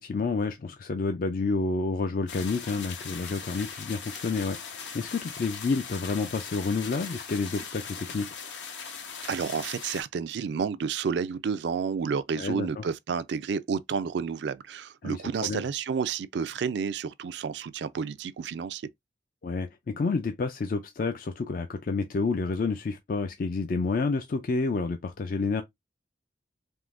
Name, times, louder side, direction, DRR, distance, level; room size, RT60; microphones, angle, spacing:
voice 1, 0.0-8.3 12.4-12.8 15.0-15.6 19.4-25.6, left 4 dB, 50° left, 0.4 m, -29 dB
sound 1, 2.3-10.0, left 6 dB, 75° left, 0.9 m, -40 dB
voice 2, 9.3-18.8, right 6 dB, 70° right, 0.4 m, -30 dB
3.6 x 2.6 x 2.4 m
head